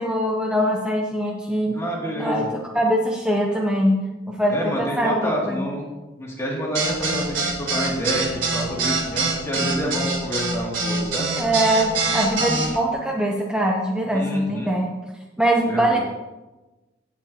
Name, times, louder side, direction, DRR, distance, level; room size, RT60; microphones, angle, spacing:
voice 1, 0.0-1.8 2.2-2.5 2.7-5.7 11.4-14.9 15.4-16.0, right 1 dB, 5° right, -1 dB, 0.7 m, -22 dB
voice 2, 1.7-2.5 4.5-5.9 6.2-11.3 14.1-14.7 15.7-16.0, equal, 15° left, -4 dB, 2.4 m, -28 dB
sound 1, 6.7-12.7, right 3 dB, 85° right, 3.6 m, -24 dB
16.5 x 7.2 x 2.8 m, 1.1 s
head